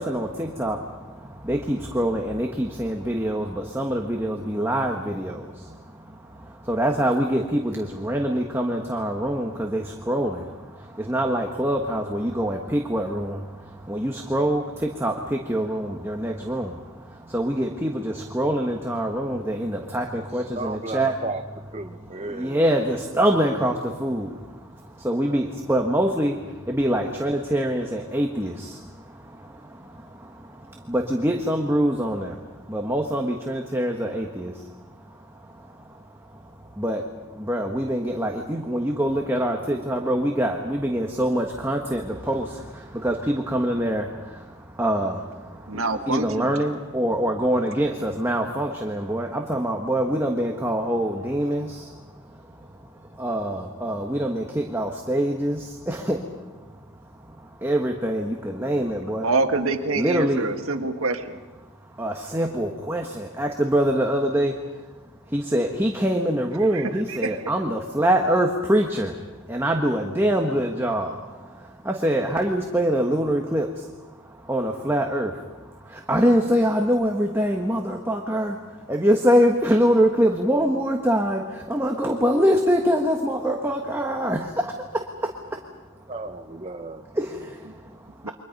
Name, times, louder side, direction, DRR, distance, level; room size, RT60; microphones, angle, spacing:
voice 1, 0.0-21.2 22.2-34.7 35.0-56.3 56.6-56.7 57.0-59.3 60.0-60.4 61.9-64.8 65.3-69.2 69.5-85.6 87.1-88.3, equal, 10° right, 2 dB, 1.3 m, -25 dB
voice 2, 20.1-21.4 21.7-22.7 25.2-25.5 86.1-87.1, right 2 dB, 30° right, 7 dB, 0.7 m, -35 dB
voice 3, 45.7-46.6 59.2-61.4 66.6-67.4 88.2-88.3, right 3 dB, 80° right, 6 dB, 1.7 m, -26 dB
29.0 x 24.0 x 5.4 m, 1.3 s
head